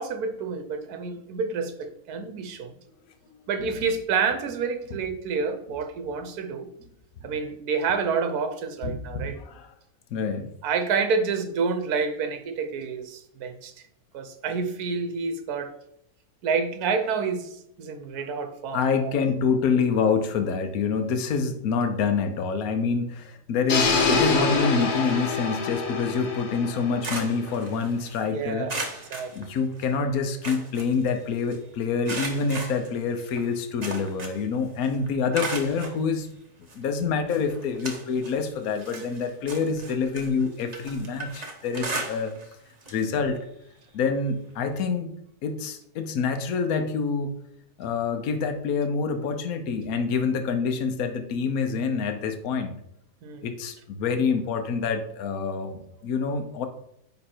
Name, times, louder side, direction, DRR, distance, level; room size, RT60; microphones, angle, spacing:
voice 1, 0.0-2.7 3.5-6.7 7.2-9.4 10.6-13.7 14.1-15.7 16.4-19.1 28.3-28.7 29.1-29.3 53.2-53.5, right 5 dB, 75° right, 8 dB, 1.3 m, -28 dB
voice 2, 3.3-3.9 4.9-5.0 8.8-9.7 10.1-10.5 18.7-28.7 29.3-36.3 36.7-42.3 42.9-43.4 43.9-45.1 45.4-47.3 47.8-52.7 53.4-56.7, left 5 dB, 70° left, 7 dB, 1.2 m, -27 dB
sound 1, 23.7-27.7, left 4 dB, 90° left, 1.7 m, -26 dB
sound 2, 26.6-28.2 28.7-30.0 30.2-31.6 32.0-34.5 34.8-36.0 36.7-36.8 37.3-38.4 38.7-42.5 42.8-43.0 43.4-43.5 44.7-44.8, right 3 dB, 30° right, 0.9 m, -36 dB
9.6 x 3.3 x 4.4 m, 0.74 s
omnidirectional pair, 1.7 m